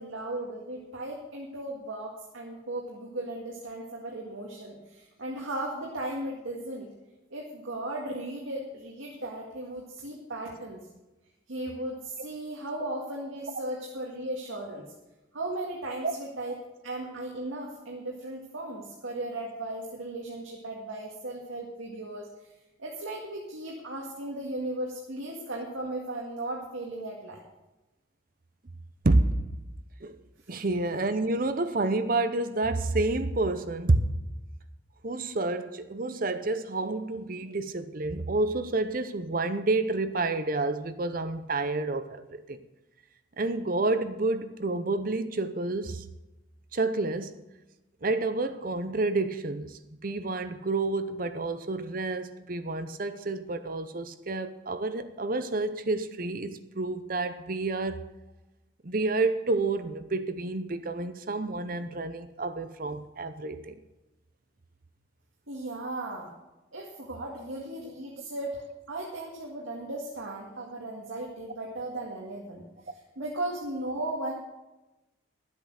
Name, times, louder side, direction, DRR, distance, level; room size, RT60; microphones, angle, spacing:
voice 1, 0.0-6.9 7.3-10.8 11.5-14.9 15.3-16.6 16.8-22.3 22.8-27.4 65.5-66.3 66.7-72.6 73.2-74.3, right 1 dB, 85° right, 1.9 m, -36 dB
voice 2, 30.5-34.0 35.0-42.6 43.4-46.0 46.7-47.4 48.0-58.1 58.8-63.8, right 2 dB, 45° right, 0.7 m, -29 dB
12.5 x 8.2 x 6.4 m
head